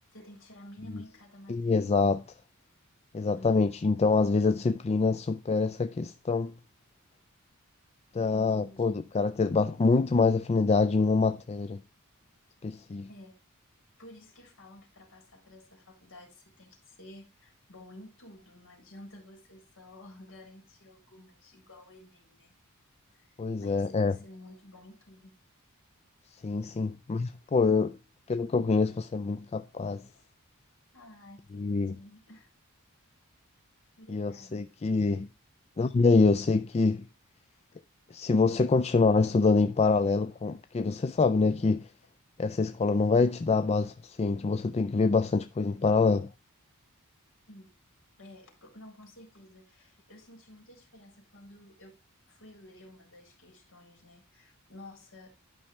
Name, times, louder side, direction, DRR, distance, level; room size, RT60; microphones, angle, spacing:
voice 1, 0.1-2.0 3.3-3.8 8.3-9.0 13.1-13.4 14.0-22.5 23.1-25.3 27.4-28.0 30.9-32.5 34.0-34.7 47.5-47.7 48.2-52.0 52.3-55.3, left 1 dB, 60° left, 3.7 m, -52 dB
voice 2, 1.5-2.2 3.1-6.5 8.1-11.8 12.6-13.1 23.4-24.2 26.4-28.0 28.3-30.0 31.5-31.9 34.1-35.3 35.8-37.0 38.1-41.9 42.4-46.3, left 4 dB, 30° left, 0.4 m, -25 dB
11.5 x 5.6 x 3.2 m
head